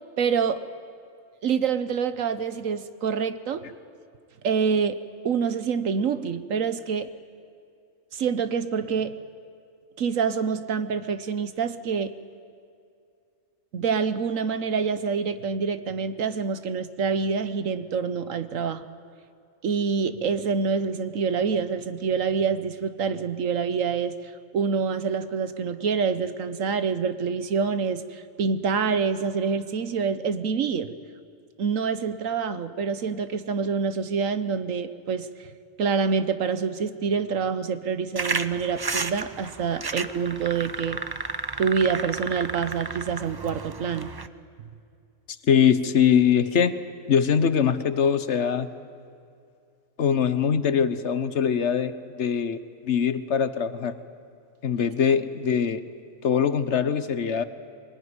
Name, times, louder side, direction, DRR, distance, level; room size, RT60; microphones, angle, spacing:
voice 1, 0.2-0.6 1.4-3.6 4.4-5.0 5.2-7.1 8.1-9.2 10.0-12.1 13.7-18.9 19.6-30.9 31.6-35.5 35.8-41.0 41.6-44.1, right 6 dB, 70° right, 11 dB, 1.3 m, -26 dB
sound 1, 38.2-44.3, right 4 dB, 30° right, 0.4 m, -32 dB
voice 2, 45.5-46.7 47.1-48.7 50.0-54.0 54.6-55.8 56.2-57.4, left 7 dB, 60° left, 12 dB, 1.3 m, -22 dB
23.5 x 20.5 x 9.7 m, 2.4 s
omnidirectional pair, 1.4 m